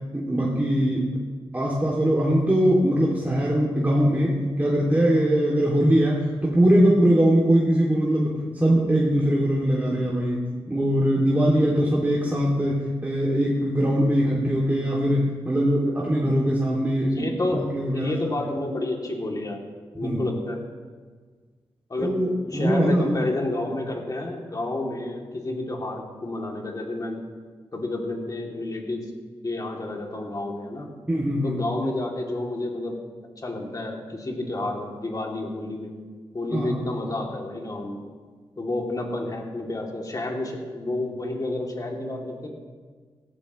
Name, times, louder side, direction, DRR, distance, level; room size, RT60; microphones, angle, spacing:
voice 1, 0.1-1.0 1.5-18.1 20.0-20.2 22.0-23.3 31.1-31.5 36.5-36.8, equal, 15° right, -5 dB, 2.6 m, -22 dB
voice 2, 17.0-17.6 17.9-19.6 19.9-20.6 21.9-22.2 22.5-27.2 27.7-29.0 29.4-30.9 31.4-33.0 33.4-35.9 36.3-38.0 38.6-42.5, left 2 dB, 40° left, 0 dB, 2.8 m, -30 dB
17.0 x 14.0 x 3.2 m, 1.5 s
cardioid pair, 60°, 10 cm